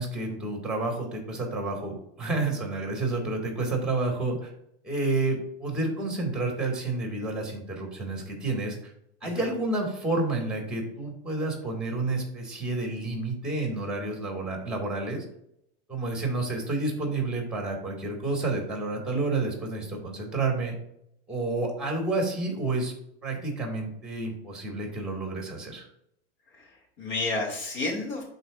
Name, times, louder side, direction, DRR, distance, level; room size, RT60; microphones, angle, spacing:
voice 1, 0.0-4.5 4.8-8.9 9.2-15.2 15.9-20.7 21.3-22.9 23.2-25.9, right 2 dB, ahead, 1 dB, 2.0 m, -30 dB
voice 2, 26.5-28.2, left 3 dB, 60° left, 0 dB, 2.6 m, -31 dB
11.0 x 3.9 x 2.5 m, 0.77 s
supercardioid pair, 140°, 32 cm